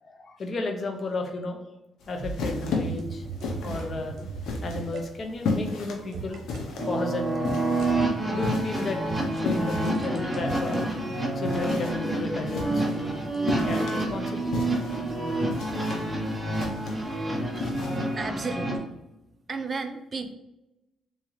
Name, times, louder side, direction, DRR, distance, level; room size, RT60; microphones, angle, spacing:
voice 1, 0.0-1.6 2.1-3.2 3.6-4.2 4.6-6.4 6.9-7.5 8.1-9.0 9.3-13.2 13.7-14.6 15.3-15.4 17.0-17.2 17.6-18.2, left 2 dB, 45° left, 3 dB, 0.8 m, -33 dB
sound 1, 2.0-18.2, left 3 dB, 75° left, 0.8 m, -35 dB
sound 2, 2.2-5.1 6.1-6.7 7.8-8.3 9.0-10.4 11.8-13.8 14.1-14.2, right 4 dB, 60° right, 0.9 m, -38 dB
sound 3, 6.8-18.8, right 1 dB, 5° right, 0.9 m, -28 dB
voice 2, 18.2-18.9 19.5-20.3, right 4 dB, 35° right, 7 dB, 0.4 m, -33 dB
3.6 x 2.8 x 3.1 m, 0.94 s
cardioid pair, 90°, 0 cm